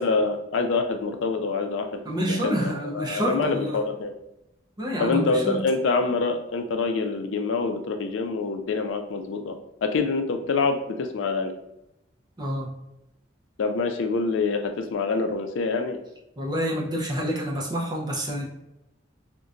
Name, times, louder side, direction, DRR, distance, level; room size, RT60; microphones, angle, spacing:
voice 1, 0.0-1.9 2.3-4.1 5.0-11.5 13.6-16.0, left 4 dB, 80° left, 6 dB, 0.4 m, -26 dB
voice 2, 2.0-3.8 4.8-5.6 12.4-12.7 16.4-18.4, equal, 20° right, -3 dB, 0.6 m, -28 dB
3.8 x 2.2 x 2.4 m, 0.88 s
head